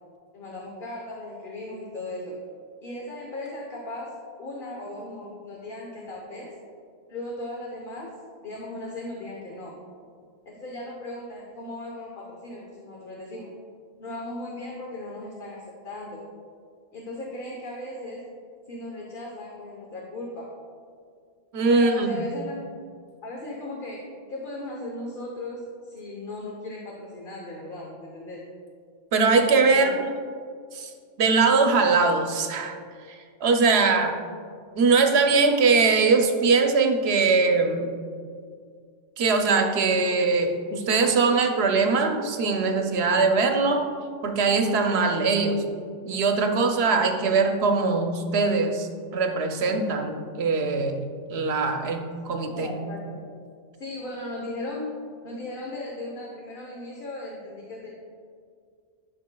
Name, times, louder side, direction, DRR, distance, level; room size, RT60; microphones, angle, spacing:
voice 1, 0.3-2.4 2.8-4.1 4.4-6.5 7.1-8.1 8.4-9.7 10.4-13.5 14.0-16.2 16.9-18.2 18.7-20.5 21.7-22.6 23.2-28.4 29.6-29.9 52.4-53.2 53.8-54.9 55.2-57.9, left 1 dB, 55° left, -2 dB, 1.1 m, -37 dB
voice 2, 21.5-22.1 29.1-30.1 30.7-30.9 31.2-32.8 33.1-34.1 34.8-37.9 39.2-43.9 44.2-45.6 46.1-51.0 51.3-52.7, right 4 dB, 70° right, 5 dB, 0.9 m, -22 dB
11.0 x 5.8 x 2.2 m, 2.1 s
omnidirectional pair, 1.1 m